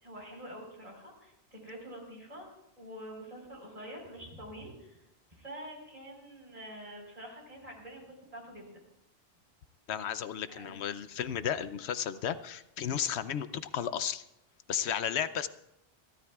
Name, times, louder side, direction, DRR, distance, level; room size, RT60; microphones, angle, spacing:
voice 1, 0.0-2.5 2.8-5.0 5.3-8.8 10.5-10.8, equal, 35° right, -1 dB, 4.5 m, -46 dB
voice 2, 9.9-14.2 14.7-15.5, left 9 dB, 90° left, 13 dB, 1.0 m, -33 dB
28.5 x 12.5 x 2.4 m, 0.86 s
omnidirectional pair, 1.1 m